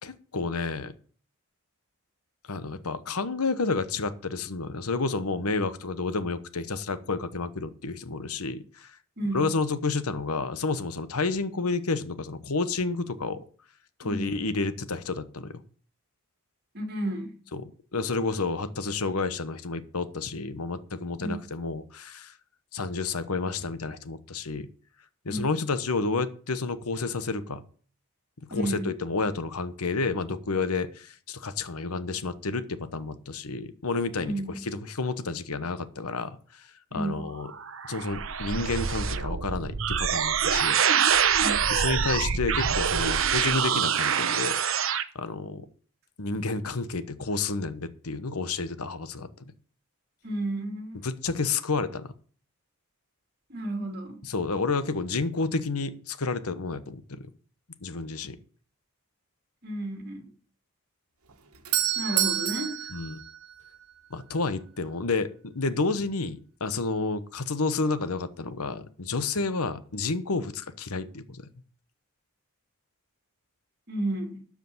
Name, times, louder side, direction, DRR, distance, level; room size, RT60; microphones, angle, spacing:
voice 1, 0.0-0.9 2.5-9.0 9.3-13.4 14.0-15.6 17.5-22.3 22.7-24.7 25.2-27.6 28.5-37.5 37.9-40.8 41.7-44.5 45.1-45.6 46.2-49.3 51.0-52.1 54.2-57.3 57.8-58.4 62.9-63.2 64.1-71.4, left 3 dB, 85° left, 12 dB, 1.1 m, -30 dB
voice 2, 9.2-9.5 14.0-14.3 16.7-17.3 21.2-21.4 25.3-25.4 28.5-28.9 34.2-34.6 36.9-37.3 41.4-41.6 50.2-51.0 53.5-54.2 59.6-60.2 62.0-62.9 73.9-74.4, right 1 dB, 45° right, 4 dB, 2.7 m, -32 dB
sound 1, 37.3-45.0, right 7 dB, 60° right, 0.8 m, -25 dB
Doorbell, 61.3-64.1, right 11 dB, 85° right, 1.4 m, -29 dB
12.5 x 5.0 x 7.9 m, 0.43 s
head